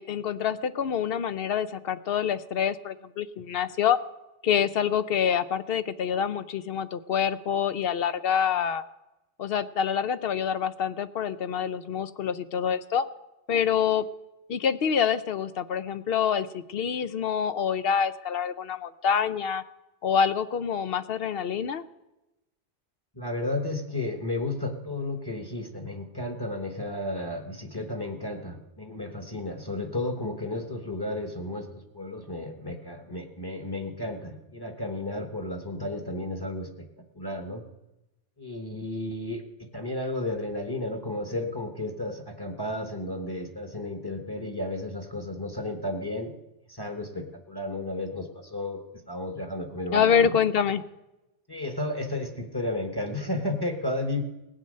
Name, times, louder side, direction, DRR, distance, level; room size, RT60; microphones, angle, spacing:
voice 1, 0.0-4.0 4.4-8.8 9.4-13.1 13.5-14.0 14.5-19.6 20.0-21.8 49.9-50.8, left 8 dB, 65° left, 14 dB, 0.8 m, -26 dB
voice 2, 23.1-37.6 38.4-46.3 46.7-48.8 49.1-50.4 51.5-54.2, left 1 dB, 20° left, 5 dB, 1.2 m, -33 dB
16.5 x 8.8 x 6.5 m, 0.96 s
omnidirectional pair, 1.1 m